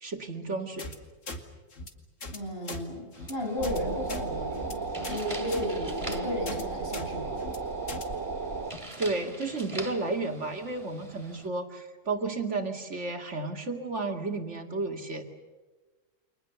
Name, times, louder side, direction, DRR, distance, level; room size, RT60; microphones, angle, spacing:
voice 1, 0.0-0.9 9.0-15.2, right 3 dB, 65° right, 5 dB, 2.7 m, -32 dB
sound 1, 0.8-1.0 1.3-1.4 1.7-1.9 2.2-2.4 2.6-2.8 3.1-3.3 3.6-3.8 4.1-4.2 4.5-4.7 5.0-5.2 5.5-5.6 6.0-6.2 6.5-6.6 6.9-7.1 7.4-7.6 7.9-8.0, left 2 dB, 75° left, 2.7 m, -39 dB
voice 2, 2.3-7.4, left 1 dB, 45° left, 2 dB, 7.0 m, -34 dB
sound 2, 3.1-11.5, right 1 dB, 25° right, 2.6 m, -45 dB
sound 3, 3.6-8.7, right 4 dB, 80° right, 2.7 m, -34 dB
29.5 x 26.0 x 7.1 m, 1.3 s
omnidirectional pair, 1.3 m